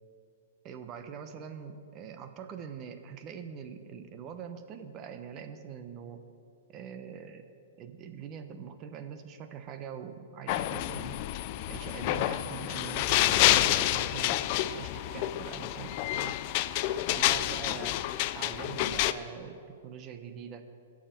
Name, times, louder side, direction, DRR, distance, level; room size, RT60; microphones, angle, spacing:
voice 1, 0.6-6.2 6.7-7.4 7.8-11.2 11.7-14.4 14.7-16.4 17.1-18.0 18.3-19.6 19.8-20.7, right 7 dB, 30° right, 8 dB, 0.9 m, -43 dB
sound 1, 10.5-19.1, left 14 dB, 40° left, 0.4 m, -28 dB
21.0 x 7.4 x 4.5 m, 2.5 s
hypercardioid pair, 155°, 0 cm